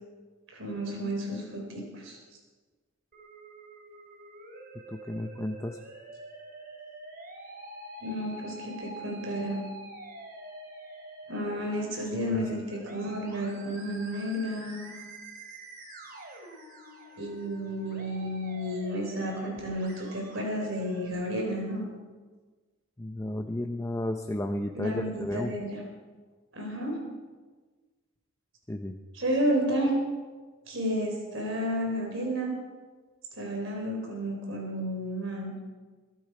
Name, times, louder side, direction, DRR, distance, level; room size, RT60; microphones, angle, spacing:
voice 1, 0.5-2.2 8.0-9.6 11.3-14.9 17.2-21.9 24.7-25.8 26.5-27.0 29.1-30.0 30.7-32.5 33.4-35.5, equal, 65° right, 1 dB, 4.3 m, -31 dB
Musical instrument, 3.1-21.1, right 1 dB, 45° right, 3.5 m, -46 dB
voice 2, 4.9-5.8 12.3-12.6 23.0-25.6 28.7-29.0, left 1 dB, 15° left, 4 dB, 0.6 m, -33 dB
23.0 x 12.0 x 4.9 m, 1.4 s
head